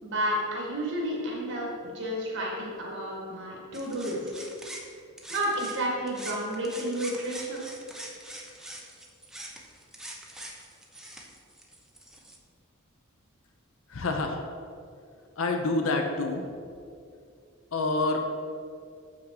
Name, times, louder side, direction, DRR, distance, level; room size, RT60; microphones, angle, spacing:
voice 1, 0.0-4.5 5.3-7.6, equal, 60° right, -3 dB, 1.9 m, -31 dB
sound 1, 3.7-5.8 6.1-12.4, right 1 dB, 5° right, 0.8 m, -43 dB
voice 2, 13.9-14.4 15.4-16.4 17.7-18.3, left 3 dB, 70° left, 3 dB, 0.7 m, -27 dB
7.4 x 5.9 x 4.8 m, 2.4 s
head